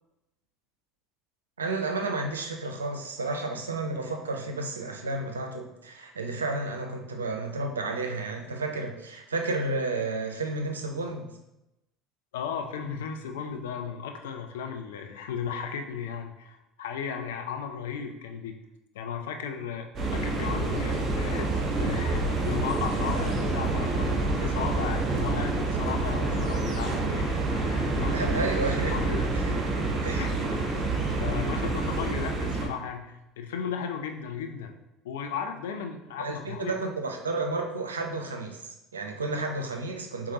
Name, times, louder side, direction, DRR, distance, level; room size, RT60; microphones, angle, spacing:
voice 1, 1.6-11.3 28.1-29.0 29.3-29.4 30.0-30.3 36.2-40.3, right 3 dB, 85° right, 3 dB, 0.5 m, -32 dB
voice 2, 12.3-18.6 18.9-19.9 20.1-28.5 28.9-29.3 30.1-30.3 31.1-34.7 35.0-36.7, left 7 dB, 75° left, 5 dB, 0.5 m, -35 dB
sound 1, 20.0-32.7, right 3 dB, 40° right, 1.1 m, -27 dB
4.7 x 3.6 x 2.9 m, 0.91 s
hypercardioid pair, 65°, 0 cm